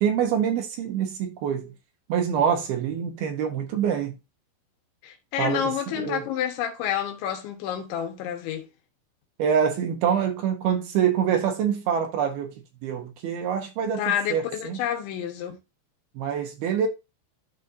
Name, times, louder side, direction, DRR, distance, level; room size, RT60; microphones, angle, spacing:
voice 1, 0.0-1.7 2.1-4.2 5.4-6.2 9.4-12.5 12.8-14.8 16.2-16.9, right 8 dB, 70° right, 2.5 m, -25 dB
voice 2, 5.0-8.7 14.0-15.6, left 9 dB, 80° left, 3.6 m, -29 dB
12.5 x 4.2 x 2.6 m
omnidirectional pair, 5.3 m